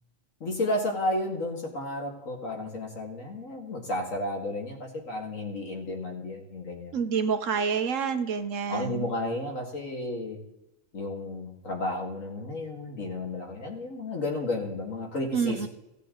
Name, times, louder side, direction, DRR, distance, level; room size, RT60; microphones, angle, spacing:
voice 1, 0.4-7.0 8.7-10.4 10.9-15.7, left 1 dB, 75° left, 1 dB, 2.5 m, -32 dB
voice 2, 6.9-9.1 15.3-15.7, right 6 dB, 70° right, 8 dB, 1.3 m, -28 dB
16.5 x 8.2 x 3.9 m, 0.93 s
omnidirectional pair, 1.4 m